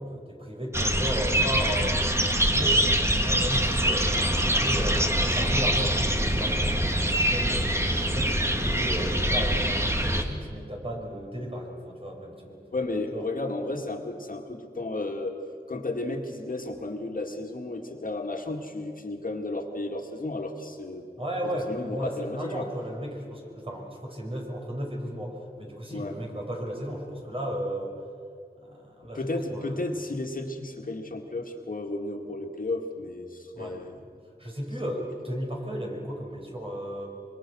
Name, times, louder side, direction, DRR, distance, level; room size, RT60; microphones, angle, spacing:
voice 1, 0.0-2.0 2.2-7.7 8.0-12.6 13.1-13.2 21.2-27.9 28.6-30.1 33.5-33.8 34.4-37.1, equal, 35° right, -1 dB, 5.5 m, -34 dB
sound 1, 0.7-10.2, right 1 dB, 15° right, 2.0 m, -24 dB
voice 2, 12.7-15.3 15.7-21.1 21.5-22.7 25.9-26.2 29.1-34.0, left 2 dB, 55° left, 2 dB, 2.2 m, -33 dB
25.5 x 23.5 x 6.3 m, 2.2 s
wide cardioid pair, 85°, 17 cm